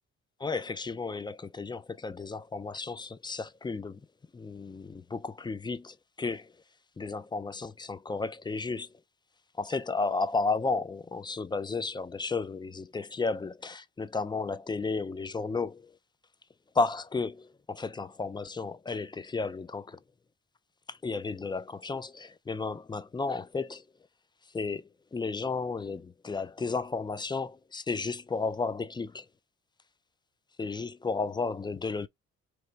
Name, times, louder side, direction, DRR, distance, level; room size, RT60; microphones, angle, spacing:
voice 1, 0.4-4.0 4.3-6.5 7.0-8.9 9.6-16.0 16.7-20.0 20.9-23.9 24.5-29.3 30.6-32.1, left 4 dB, 15° left, 0.3 m, -33 dB
3.2 x 2.9 x 3.9 m
cardioid pair, 90°, 30 cm